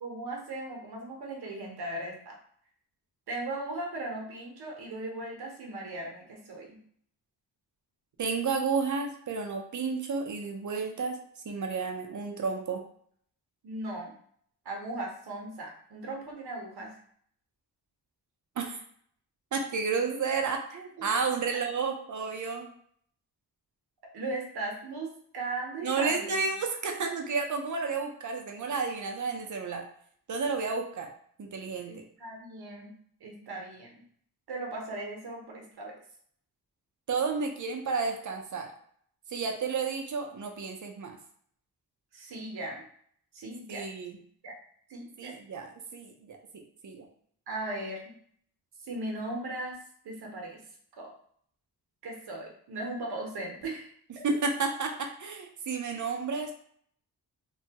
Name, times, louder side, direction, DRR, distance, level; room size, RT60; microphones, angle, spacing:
voice 1, 0.0-2.4 3.3-6.8 13.6-14.1 14.6-16.9 21.0-21.1 21.5-21.6 24.1-25.1 25.3-26.5 31.9-32.9 33.2-33.9 34.5-35.9 42.1-42.8 43.3-43.8 44.4-44.5 44.9-45.3 47.5-48.1 48.8-49.8 50.0-50.6 51.0-51.1 52.0-54.2, right 2 dB, 70° right, 1 dB, 0.9 m, -38 dB
voice 2, 8.2-11.2 11.5-12.8 18.6-18.8 19.5-22.7 25.8-29.8 30.3-31.1 31.4-32.0 37.1-38.7 39.3-41.2 43.7-44.2 45.2-46.4 46.8-47.1 54.2-56.5, right 5 dB, 50° right, 3 dB, 0.6 m, -31 dB
2.8 x 2.3 x 2.8 m, 0.62 s
cardioid pair, 70°, 40 cm